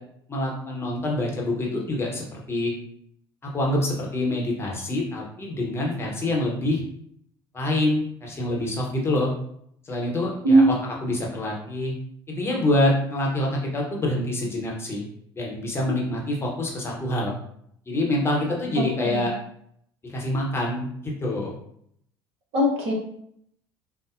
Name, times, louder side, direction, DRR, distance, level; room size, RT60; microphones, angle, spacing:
voice 1, 0.3-2.7 3.4-6.8 7.5-9.3 9.8-11.9 12.3-15.0 15.3-17.3 17.9-19.3 20.1-21.5, left 1 dB, 20° left, -2 dB, 0.9 m, -26 dB
voice 2, 22.5-22.9, right 1 dB, 45° right, -1 dB, 0.9 m, -18 dB
3.8 x 2.1 x 2.5 m, 0.69 s
figure-of-eight pair, 65°, 13 cm